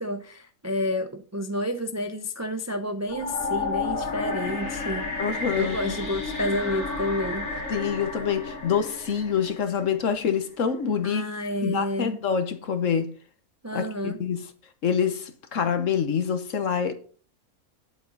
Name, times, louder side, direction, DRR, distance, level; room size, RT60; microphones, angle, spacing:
voice 1, 0.0-5.0 5.6-7.6 11.0-12.2 13.6-14.2, left 1 dB, 20° right, 0.4 m, -30 dB
sound 1, 3.1-10.2, left 3 dB, 85° left, 2.7 m, -32 dB
voice 2, 5.2-6.0 7.7-11.2 11.6-13.1 13.7-14.4 14.8-16.9, left 7 dB, 60° left, 1.4 m, -26 dB
9.7 x 8.0 x 4.1 m
omnidirectional pair, 1.5 m